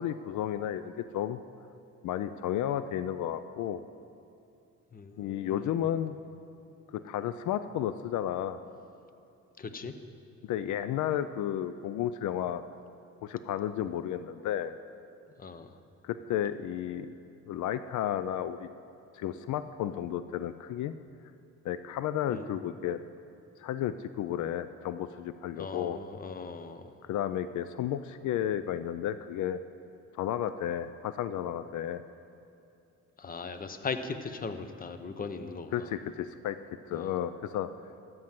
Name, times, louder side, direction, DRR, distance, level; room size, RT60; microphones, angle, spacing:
voice 1, 0.0-1.4 2.0-3.8 5.2-6.2 6.9-8.6 10.4-12.6 13.2-14.7 16.0-17.1 17.5-18.7 19.1-20.9 21.6-23.0 23.6-26.0 27.0-29.6 30.1-32.0 35.7-36.6 36.9-37.7, left 10 dB, 75° left, 12 dB, 0.5 m, -32 dB
voice 2, 4.9-5.8 9.6-9.9 15.4-15.8 22.3-22.5 25.6-27.0 33.2-35.9 36.9-37.2, left 4 dB, 30° left, 9 dB, 0.8 m, -39 dB
13.0 x 7.9 x 5.9 m, 2.6 s
cardioid pair, 90°, 30 cm